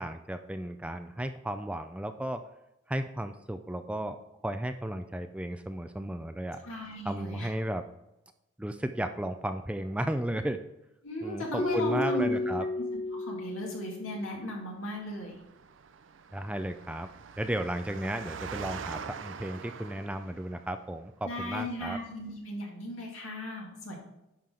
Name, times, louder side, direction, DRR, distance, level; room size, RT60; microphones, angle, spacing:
voice 1, 0.0-2.4 2.9-4.2 4.4-6.6 7.0-7.8 8.6-10.6 11.2-12.7 16.3-17.1 17.4-22.0, right 1 dB, 5° right, 8 dB, 0.3 m, -34 dB
voice 2, 6.6-7.5 11.0-12.4 13.2-15.4 21.2-24.0, equal, 85° left, -2 dB, 2.5 m, -36 dB
Keyboard (musical), 11.6-14.4, left 2 dB, 30° left, 1.2 m, -32 dB
Engine, 15.1-20.7, right 6 dB, 70° right, 0.5 m, -44 dB
10.5 x 5.8 x 3.8 m, 0.90 s
head